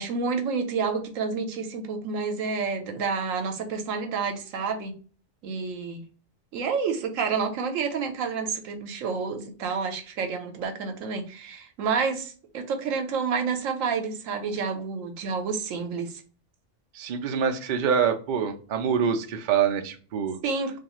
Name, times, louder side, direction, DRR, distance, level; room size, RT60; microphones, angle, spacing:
voice 1, 0.0-5.0 5.4-6.0 6.5-16.2 20.4-20.8, right 5 dB, 85° right, 5 dB, 1.0 m, -29 dB
voice 2, 16.9-20.4, right 7 dB, 65° right, 4 dB, 0.4 m, -25 dB
2.6 x 2.4 x 2.9 m, 0.39 s
omnidirectional pair, 1.3 m